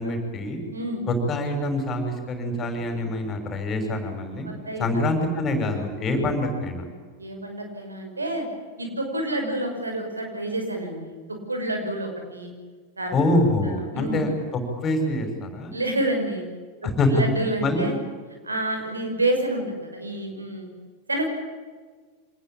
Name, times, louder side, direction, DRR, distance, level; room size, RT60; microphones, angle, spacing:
voice 1, 0.0-0.6 1.1-4.5 4.8-6.8 13.1-15.7 16.8-17.2 17.6-17.9, left 1 dB, 25° left, 5 dB, 6.0 m, -25 dB
voice 2, 0.7-1.0 4.4-5.1 6.1-6.3 7.2-8.5 8.8-12.5 13.0-13.2 13.6-14.3 15.7-16.5 17.1-17.9 18.4-20.7 21.1-21.2, right 1 dB, 80° right, 3 dB, 6.0 m, -28 dB
26.0 x 20.0 x 8.8 m, 1.5 s
figure-of-eight pair, 90°, 0 cm